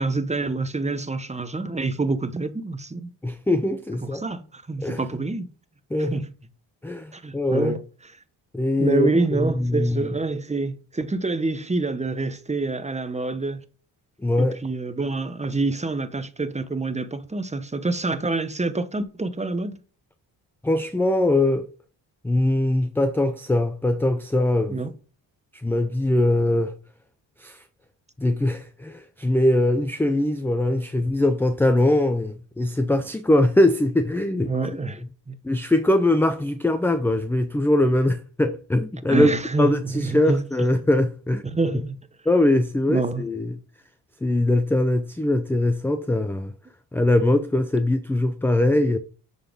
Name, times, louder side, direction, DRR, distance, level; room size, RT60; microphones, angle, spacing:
voice 1, 0.0-3.1 4.1-5.5 6.1-6.2 7.1-7.8 8.8-13.6 14.4-19.7 24.7-24.9 34.4-35.3 39.1-40.4 41.5-42.0 42.9-43.2, right 3 dB, 15° right, 0.9 m, -26 dB
voice 2, 3.2-4.2 4.8-5.2 5.9-6.3 6.8-7.8 8.5-10.2 14.2-14.6 20.6-21.7 22.2-24.8 25.5-26.8 27.4-27.6 28.2-34.8 35.4-39.3 39.6-41.4 41.7-41.8 42.3-43.6 44.2-46.5 46.9-49.0, left 1 dB, 5° left, 0.4 m, -22 dB
6.6 x 4.0 x 3.6 m
supercardioid pair, 65°, 46 cm